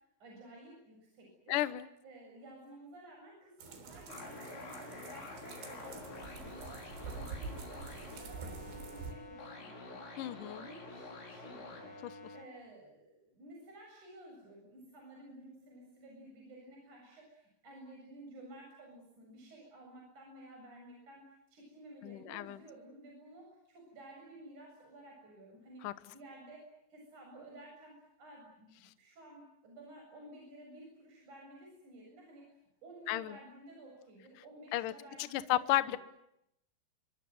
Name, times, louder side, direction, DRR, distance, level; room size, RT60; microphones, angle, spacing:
voice 1, 0.2-1.6 2.0-25.8 26.1-32.5 32.8-36.0, right 1 dB, 40° right, 0 dB, 8.9 m, -54 dB
voice 2, 1.5-1.9 10.2-10.7 12.0-12.1 22.0-22.6 25.8-25.9 33.1-33.4 34.7-34.9 35.3-36.0, left 15 dB, 70° left, 14 dB, 2.1 m, -33 dB
sound 1, 3.6-9.1, right 5 dB, 90° right, 5.8 m, -46 dB
sound 2, 4.1-12.4, left 3 dB, 85° left, 8.0 m, -48 dB
28.0 x 25.5 x 8.0 m, 0.82 s
omnidirectional pair, 5.1 m